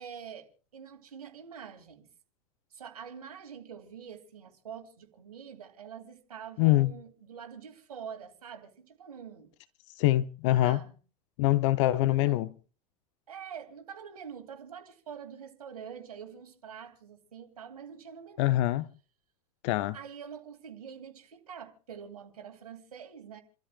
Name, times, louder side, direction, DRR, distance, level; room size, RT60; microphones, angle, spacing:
voice 1, 0.0-2.1 2.7-9.5 10.5-11.0 12.1-12.4 13.3-18.6 19.9-23.4, right 7 dB, 70° right, 2.5 m, -45 dB
voice 2, 6.6-6.9 10.0-10.8 11.4-12.5 18.4-18.8 19.6-20.0, left 15 dB, 50° left, 0.7 m, -24 dB
29.0 x 13.0 x 2.4 m
figure-of-eight pair, 85°, 20 cm